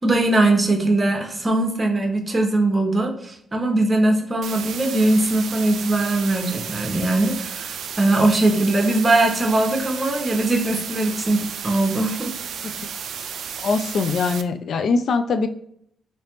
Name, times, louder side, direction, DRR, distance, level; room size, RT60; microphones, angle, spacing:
voice 1, 0.0-12.3, right 2 dB, 30° right, 2 dB, 1.0 m, -20 dB
sound 1, 4.4-14.4, right 7 dB, 75° right, 0.3 m, -33 dB
voice 2, 13.6-15.5, left 4 dB, 70° left, 7 dB, 0.3 m, -22 dB
3.2 x 2.9 x 2.9 m, 0.69 s
supercardioid pair, 50°, 0 cm